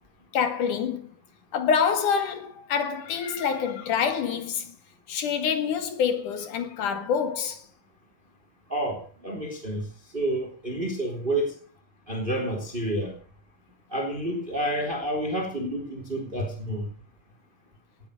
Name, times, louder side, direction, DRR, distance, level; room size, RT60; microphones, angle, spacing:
voice 1, 0.3-1.1 1.5-4.8 5.1-7.7, left 7 dB, 65° left, 3.2 m, -26 dB
voice 2, 8.7-9.8 10.1-11.5 12.1-13.1 13.9-16.9, right 1 dB, 15° right, 3.1 m, -29 dB
18.5 x 8.9 x 6.5 m
omnidirectional pair, 3.9 m